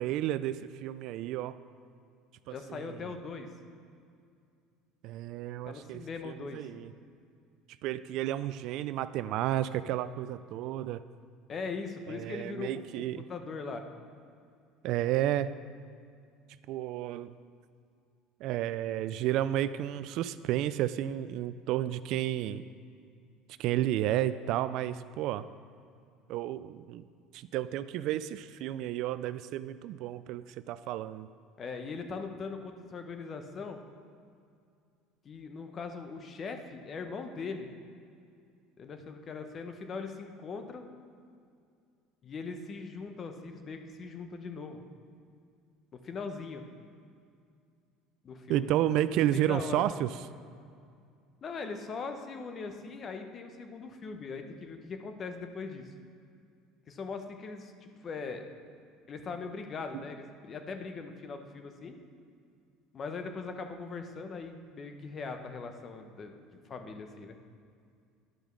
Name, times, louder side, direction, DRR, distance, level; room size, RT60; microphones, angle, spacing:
voice 1, 0.0-1.6 2.5-3.1 5.0-6.9 7.8-11.0 12.1-13.3 14.8-15.5 16.7-17.3 18.4-22.6 23.6-25.5 26.3-27.0 27.3-31.3 48.5-50.1 59.9-60.0, right 12 dB, 65° right, 14 dB, 0.3 m, -32 dB
voice 2, 2.5-3.5 5.7-6.7 11.5-13.0 13.3-13.8 31.6-33.8 35.2-37.7 38.8-40.9 42.2-44.8 45.9-46.6 48.2-48.7 49.2-49.9 51.4-55.9 56.9-58.4 59.1-62.0 62.9-67.4, left 4 dB, 40° left, 6 dB, 1.0 m, -40 dB
11.0 x 5.2 x 6.2 m, 2.3 s
supercardioid pair, 100°, 0 cm